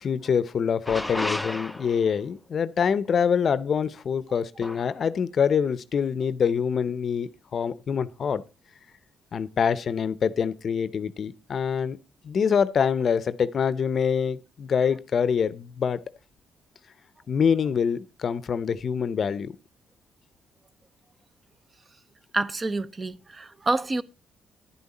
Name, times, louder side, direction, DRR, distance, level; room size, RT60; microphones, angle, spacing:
voice 1, 0.0-8.4 9.3-12.0 12.2-16.0 17.3-19.6, left 7 dB, 50° left, 0.7 m, -25 dB
sound 1, 0.8-2.2 4.6-5.0, left 1 dB, 10° left, 0.5 m, -32 dB
voice 2, 22.3-24.0, right 2 dB, 30° right, 0.8 m, -27 dB
11.0 x 9.7 x 4.1 m
cardioid pair, 90°, 0 cm